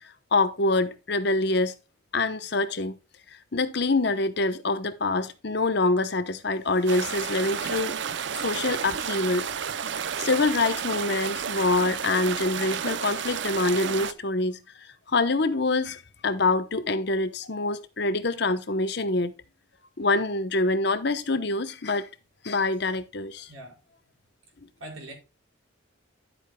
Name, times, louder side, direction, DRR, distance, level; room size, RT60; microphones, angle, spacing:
voice 1, 0.3-1.7 2.1-3.0 3.5-8.0 8.4-9.5 10.2-14.6 15.1-19.3 20.0-22.1 22.4-23.5, left 2 dB, 55° left, 0.8 m, -25 dB
sound 1, 6.9-14.1, right 7 dB, 60° right, 0.5 m, -31 dB
voice 2, 23.5-23.8 24.8-25.1, right 1 dB, 85° right, 4.9 m, -41 dB
11.5 x 8.0 x 2.2 m
head